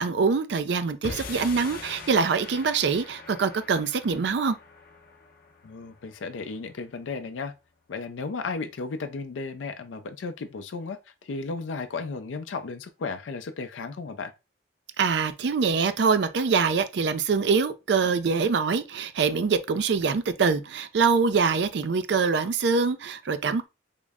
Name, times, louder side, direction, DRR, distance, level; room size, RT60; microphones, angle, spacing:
voice 1, 0.0-4.6 15.0-23.7, right 5 dB, 65° right, 0.4 m, -24 dB
sound 1, 1.0-7.4, left 3 dB, 50° left, 0.7 m, -43 dB
voice 2, 5.6-7.5 7.9-14.3, left 4 dB, 90° left, 0.4 m, -34 dB
3.6 x 2.1 x 3.4 m
head